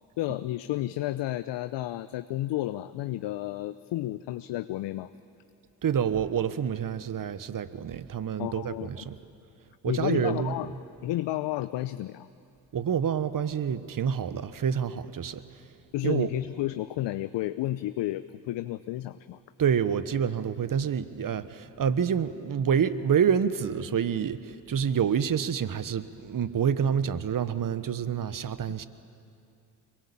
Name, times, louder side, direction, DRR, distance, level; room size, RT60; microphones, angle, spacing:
voice 1, 0.2-5.1 8.4-9.1 9.8-10.7 11.0-12.3 15.9-19.4, left 15 dB, 65° left, 12 dB, 0.8 m, -31 dB
voice 2, 5.8-9.2 9.8-10.5 12.7-15.4 16.0-16.3 19.6-28.9, right 7 dB, 45° right, 13 dB, 1.3 m, -27 dB
25.5 x 22.0 x 8.7 m, 2.5 s
hypercardioid pair, 50°, 47 cm